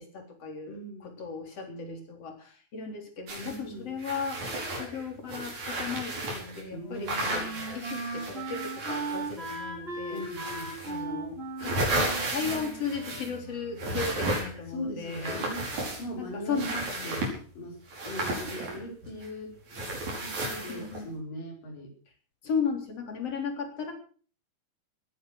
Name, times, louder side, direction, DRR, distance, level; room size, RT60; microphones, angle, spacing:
voice 1, 0.0-10.2 10.9-11.8 12.3-15.4 16.2-17.2 20.7-21.1 22.4-23.9, left 5 dB, 50° left, 4 dB, 4.7 m, -36 dB
voice 2, 0.7-1.1 1.7-2.1 3.4-3.9 6.7-7.7 10.1-10.8 14.7-15.7 16.0-17.8 18.1-19.6 20.2-21.9, equal, 90° left, 1 dB, 7.0 m, -40 dB
sound 1, 3.3-3.6 4.0-6.6 7.0-9.7 10.2-11.0 11.4-13.4 13.8-14.7 15.1-16.2 16.5-17.4 17.9-19.3 19.7-21.0, right 1 dB, 60° right, 6.5 m, -33 dB
Wind instrument woodwind instrument, 6.3-14.1, right 2 dB, 15° right, 4.4 m, -38 dB
19.0 x 10.0 x 6.5 m, 0.43 s
omnidirectional pair, 3.7 m